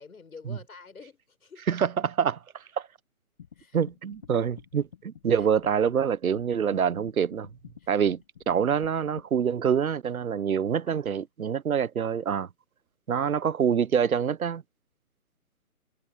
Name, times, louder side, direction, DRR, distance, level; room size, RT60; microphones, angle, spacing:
voice 1, 0.0-1.7 3.6-3.8 7.8-8.1 10.9-11.1 13.1-13.3, left 4 dB, 80° left, 7.1 m, -49 dB
voice 2, 1.7-2.9 3.7-7.5 7.9-12.5 13.1-14.6, right 7 dB, 75° right, 1.0 m, -26 dB
sound 1, 3.4-9.3, left 8 dB, 20° left, 2.2 m, -50 dB
hypercardioid pair, 180°, 43 cm